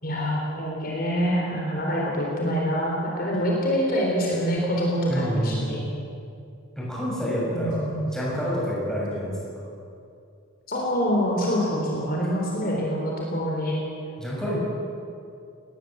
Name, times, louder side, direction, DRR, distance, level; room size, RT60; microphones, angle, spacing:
voice 1, 0.0-5.8 7.5-8.1 10.7-13.8, equal, 45° left, -2 dB, 3.9 m, -25 dB
voice 2, 5.1-5.7 6.7-9.4 14.2-14.6, equal, 5° left, -6 dB, 6.9 m, -28 dB
20.0 x 19.0 x 8.0 m, 2.5 s
head